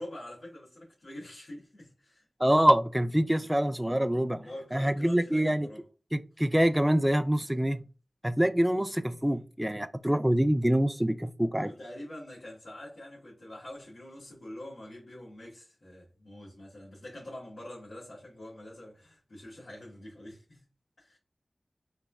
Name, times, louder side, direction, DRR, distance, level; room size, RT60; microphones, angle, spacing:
voice 1, 0.0-2.2 4.3-5.8 9.2-9.4 11.6-20.6 21.0-21.2, left 1 dB, 85° left, 1.6 m, -45 dB
voice 2, 2.4-4.4 4.7-5.7 6.1-7.8 8.2-11.7, equal, 10° right, 0.3 m, -25 dB
4.0 x 3.3 x 2.3 m
cardioid pair, 40°, 0 cm